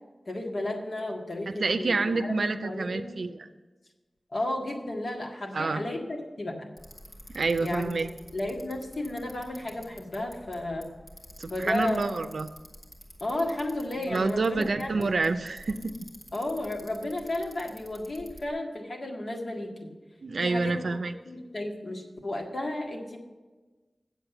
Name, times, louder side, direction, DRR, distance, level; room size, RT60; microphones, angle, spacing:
voice 1, 0.3-3.2 4.3-6.7 7.6-8.0 8.3-10.9 11.5-12.1 13.2-15.1 16.3-19.9 20.4-20.9 21.3-23.2, left 1 dB, 65° left, 0 dB, 1.8 m, -33 dB
voice 2, 1.5-3.5 5.5-5.8 7.3-8.1 11.4-12.5 14.1-15.9 20.2-21.1, right 3 dB, 80° right, 8 dB, 0.5 m, -28 dB
Bicycle, 6.8-18.5, equal, 50° left, 2.0 m, -50 dB
8.1 x 7.6 x 6.9 m, 1.2 s
wide cardioid pair, 65°, 0 cm